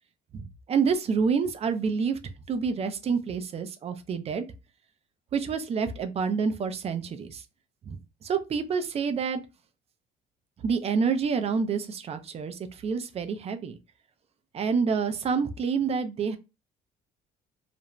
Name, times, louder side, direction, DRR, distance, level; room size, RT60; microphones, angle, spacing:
voice 1, 0.3-2.2 2.5-4.4 5.3-7.4 7.9-9.4 10.6-13.8 14.5-16.4, right 5 dB, 40° right, 0.4 m, -28 dB
2.5 x 2.1 x 2.9 m
cardioid pair, 110°, 17 cm